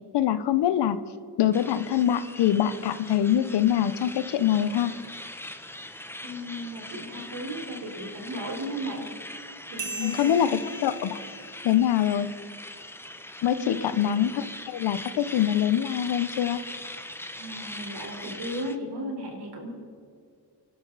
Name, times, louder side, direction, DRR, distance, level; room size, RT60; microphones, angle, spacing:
voice 1, 0.1-1.0 1.4-4.9 10.0-11.2 11.6-12.3 13.4-16.6, left 10 dB, 75° left, 13 dB, 1.0 m, -24 dB
sound 1, 1.5-18.8, left 1 dB, 5° left, 1.0 m, -41 dB
voice 2, 6.2-9.0 9.7-10.5 13.6-13.8 17.4-19.7, equal, 75° right, 1 dB, 4.5 m, -35 dB
sound 2, 9.8-12.8, right 2 dB, 45° right, 2.6 m, -40 dB
26.5 x 12.0 x 4.1 m, 2.4 s
cardioid pair, 95°, 41 cm